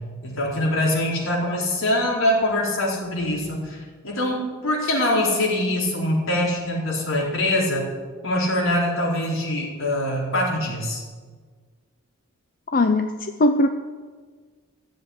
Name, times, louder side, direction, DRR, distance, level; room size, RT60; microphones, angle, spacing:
voice 1, 0.2-7.9 8.2-11.0, left 1 dB, 70° left, -3 dB, 4.5 m, -23 dB
voice 2, 12.7-13.7, left 2 dB, 40° left, 7 dB, 0.6 m, -20 dB
14.5 x 7.6 x 9.9 m, 1.5 s
head